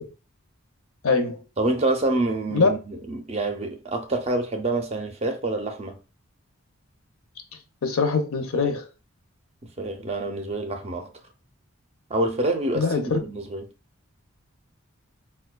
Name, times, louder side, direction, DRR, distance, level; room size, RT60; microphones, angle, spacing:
voice 1, 1.0-1.4 2.5-2.7 7.8-8.9 12.7-13.2, left 4 dB, 75° left, 0.6 m, -22 dB
voice 2, 1.6-6.0 9.8-11.1 12.1-13.7, right 2 dB, 30° right, 0.4 m, -27 dB
4.5 x 2.2 x 2.2 m
head